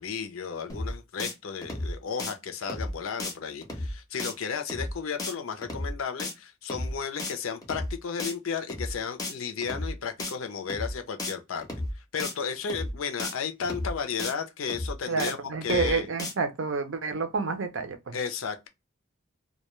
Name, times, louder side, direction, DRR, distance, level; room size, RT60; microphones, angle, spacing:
voice 1, 0.0-11.7 12.1-16.1 18.1-18.7, left 6 dB, 85° left, 0.5 m, -34 dB
sound 1, 0.7-0.9 1.2-1.3 1.6-1.9 2.2-2.3 2.7-2.9 3.2-3.3 3.6-3.9 4.2-4.3 4.7-4.9 5.2-5.3 5.6-5.9 6.2-6.3 6.7-6.9 7.2-7.3 7.6-7.9 8.2-8.3 8.7-8.9 9.2-9.3 9.6-9.9 10.2-10.3 10.7-10.9 11.2-11.3 11.6-11.9 12.2-12.3 12.7-12.9 13.2-13.3 13.6-13.9 14.2-14.3 14.7-14.9 15.2-15.3 15.6-15.9 16.2-16.3, left 1 dB, 20° left, 0.5 m, -33 dB
voice 2, 15.1-18.1, right 5 dB, 65° right, 0.5 m, -29 dB
2.2 x 2.1 x 2.9 m
head